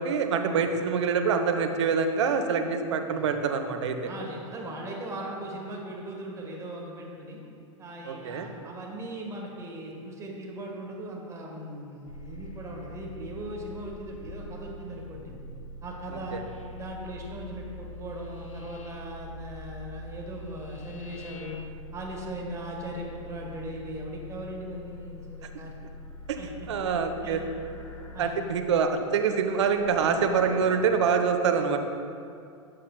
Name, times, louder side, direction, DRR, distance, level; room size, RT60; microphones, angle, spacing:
voice 1, 0.0-4.1 8.1-8.5 16.3-16.4 26.3-26.4 26.7-27.4 28.2-31.8, right 6 dB, 60° right, 6 dB, 0.7 m, -25 dB
voice 2, 4.0-7.4 7.8-15.3 15.8-16.4 16.7-21.6 21.9-25.7 26.4-26.5 27.2-27.4 28.1-28.3, right 1 dB, 20° right, -1 dB, 1.6 m, -39 dB
sound 1, 12.1-28.6 29.5-31.2, left 2 dB, 80° left, 0.6 m, -43 dB
12.5 x 7.6 x 2.3 m, 2.5 s
figure-of-eight pair, 90°, 17 cm